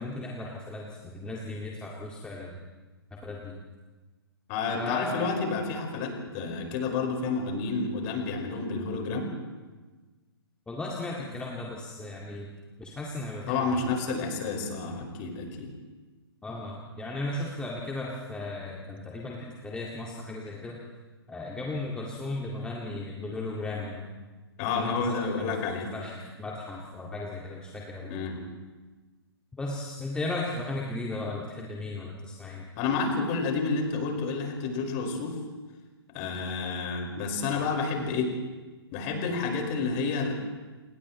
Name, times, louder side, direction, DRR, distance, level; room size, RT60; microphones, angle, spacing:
voice 1, 0.0-2.6 3.2-3.6 4.7-5.3 10.7-12.5 12.8-13.9 16.4-20.8 21.3-24.1 24.7-25.5 25.9-28.1 29.5-32.7, left 2 dB, 5° left, -3 dB, 2.1 m, -36 dB
voice 2, 4.5-9.3 13.5-15.7 24.6-25.9 28.1-28.4 32.8-35.4 36.1-38.4 38.9-40.3, left 4 dB, 30° left, 2 dB, 5.2 m, -30 dB
29.5 x 28.0 x 3.2 m, 1.3 s
figure-of-eight pair, 125°, 13 cm